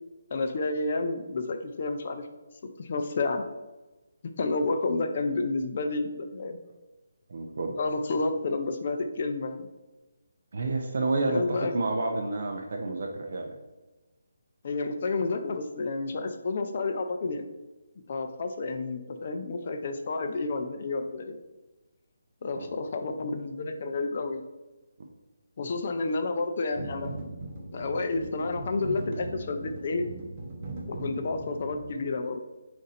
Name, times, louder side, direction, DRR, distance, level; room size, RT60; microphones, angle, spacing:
voice 1, 0.3-2.3 2.8-3.4 4.2-6.6 7.8-9.7 11.2-11.7 14.6-17.5 18.1-21.4 22.4-24.4 25.6-27.1 27.7-30.1 30.9-32.4, left 3 dB, 45° left, 6 dB, 0.4 m, -30 dB
voice 2, 7.3-7.8 10.5-13.5 22.5-22.7, right 2 dB, 60° right, 2 dB, 0.5 m, -30 dB
sound 1, 26.7-31.8, right 2 dB, 30° right, 0.8 m, -39 dB
4.0 x 2.6 x 4.0 m, 1.1 s
hypercardioid pair, 165°, 0 cm